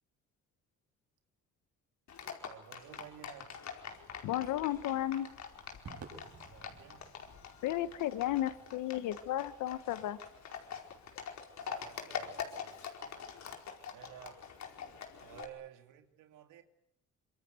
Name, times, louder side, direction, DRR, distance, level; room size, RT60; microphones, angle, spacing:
Livestock farm animals working animals, 2.1-15.4, left 7 dB, 65° left, 4.9 m, -45 dB
voice 1, 2.4-3.5 6.5-7.0 11.6-12.8 13.9-14.5 15.2-16.6, right 11 dB, 85° right, 2.9 m, -53 dB
voice 2, 4.2-5.3 7.6-10.2, left 13 dB, 90° left, 1.3 m, -33 dB
Crowd / Fireworks, 5.9-10.3, right 5 dB, 55° right, 7.0 m, -55 dB
26.0 x 23.5 x 9.5 m
cardioid pair, 90°, 30 cm